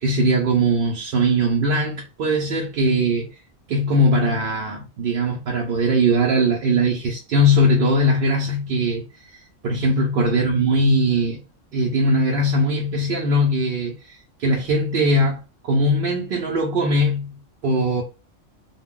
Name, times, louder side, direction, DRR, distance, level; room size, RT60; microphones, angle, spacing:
voice 1, 0.0-3.3 3.7-9.0 9.3-11.4 11.7-17.4 17.6-18.0, equal, 60° right, 0.6 m, -20 dB
2.3 x 2.0 x 3.6 m
omnidirectional pair, 1.3 m